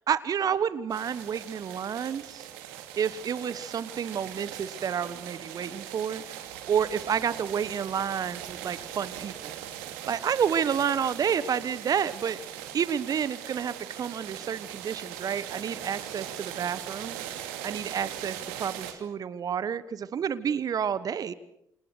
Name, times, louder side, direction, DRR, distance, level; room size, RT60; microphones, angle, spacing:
voice 1, 0.1-2.5 3.0-9.5 10.1-12.4 12.7-17.2 17.6-21.3, right 8 dB, 45° right, 16 dB, 1.3 m, -30 dB
sound 1, 0.9-18.9, right 11 dB, 70° right, 2.8 m, -40 dB
28.0 x 27.5 x 6.5 m, 0.79 s
figure-of-eight pair, 45°, 9 cm